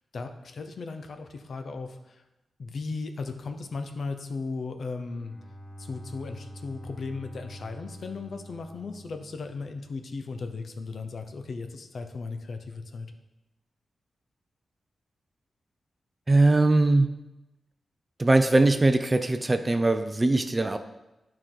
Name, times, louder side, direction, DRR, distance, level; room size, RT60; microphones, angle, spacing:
voice 1, 0.1-2.2 2.6-5.3 5.8-13.1, left 4 dB, 60° left, 6 dB, 0.7 m, -36 dB
Bowed string instrument, 5.0-10.0, equal, 10° left, 1.1 m, -45 dB
voice 2, 16.3-17.1 18.2-20.8, right 2 dB, 20° right, 9 dB, 0.4 m, -21 dB
11.5 x 4.8 x 3.8 m, 0.97 s
wide cardioid pair, 125°, 0 cm